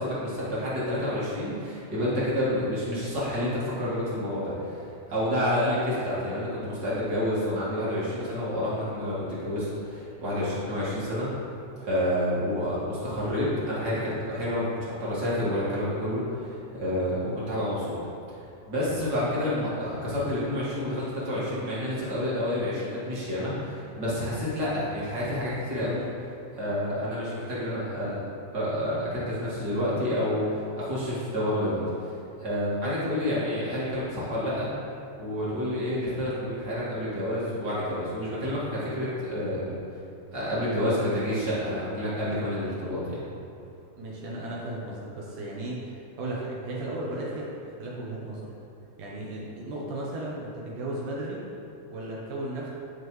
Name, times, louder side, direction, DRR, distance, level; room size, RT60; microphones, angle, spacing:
voice 1, 0.0-11.3 11.8-18.0 18.3-18.4 18.7-26.0 26.5-28.2 28.5-32.1 32.4-34.7 35.2-39.8 40.3-43.2, left 1 dB, 35° right, -9 dB, 1.8 m, -29 dB
voice 2, 44.0-48.5 49.0-51.4 51.9-52.7, right 1 dB, 75° right, -5 dB, 2.3 m, -35 dB
11.0 x 4.8 x 3.1 m, 2.7 s
omnidirectional pair, 3.8 m